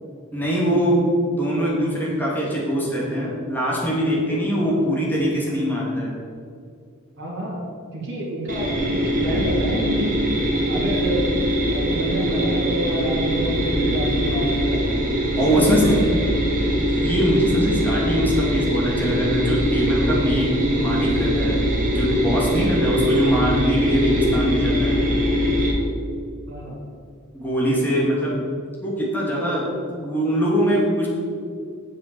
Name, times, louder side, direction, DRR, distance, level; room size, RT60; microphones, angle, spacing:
voice 1, 0.3-6.1 15.4-15.9 16.7-21.6 21.9-25.0 27.3-28.3 28.8-29.7 30.0-31.1, equal, 10° left, -5 dB, 2.6 m, -22 dB
voice 2, 7.2-7.6 7.9-10.1 10.7-11.3 11.7-14.8 15.3-16.3 26.5-26.8, equal, 55° right, -5 dB, 2.6 m, -28 dB
sound 1, 8.5-25.7, equal, 40° right, 1.8 m, -22 dB
7.3 x 7.3 x 7.0 m, 2.3 s
head